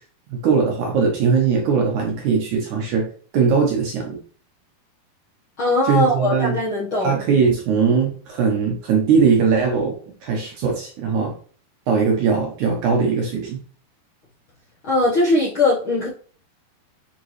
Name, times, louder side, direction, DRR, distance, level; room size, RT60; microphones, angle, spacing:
voice 1, 0.4-3.1 3.3-4.2 5.8-6.5 7.0-9.9 10.2-11.3 11.9-13.6, right 5 dB, 65° right, 0 dB, 2.1 m, -20 dB
voice 2, 5.6-7.2 14.8-16.1, left 2 dB, 60° left, -6 dB, 1.3 m, -20 dB
9.1 x 3.7 x 3.2 m, 0.43 s
omnidirectional pair, 4.4 m